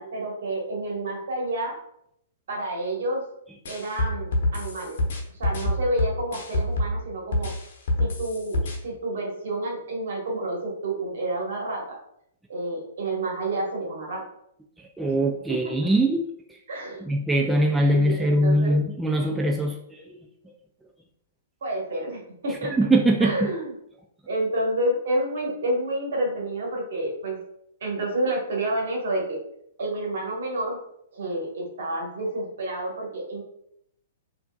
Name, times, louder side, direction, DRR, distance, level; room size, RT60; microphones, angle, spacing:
voice 1, 0.0-1.7 2.5-3.2 3.7-5.0 5.3-7.5 8.0-12.0 12.5-14.2 15.5-15.7 16.7-17.0 17.8-18.8 21.6-22.7 23.2-23.7 24.3-27.4 27.8-29.4 29.8-30.8 31.1-33.4, right 1 dB, 65° right, -2 dB, 1.2 m, -29 dB
sound 1, 3.6-7.0 7.3-8.7, left 1 dB, 60° left, 0.8 m, -26 dB
voice 2, 15.0-16.3 17.0-19.7 22.8-23.5, right 1 dB, 5° right, 1 dB, 0.3 m, -21 dB
4.3 x 2.6 x 2.3 m, 0.74 s
figure-of-eight pair, 115°, 0 cm